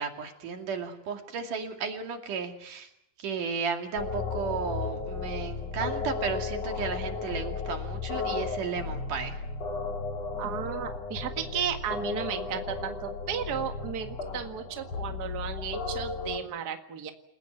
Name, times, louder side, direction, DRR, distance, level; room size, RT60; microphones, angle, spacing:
voice 1, 0.0-2.9 3.2-9.4, right 5 dB, 75° right, 4 dB, 3.9 m, -34 dB
sound 1, 4.0-16.4, left 4 dB, 50° left, 3.8 m, -34 dB
voice 2, 10.4-17.1, right 7 dB, 35° right, 5 dB, 1.9 m, -34 dB
29.0 x 16.0 x 9.2 m, 0.77 s
omnidirectional pair, 3.8 m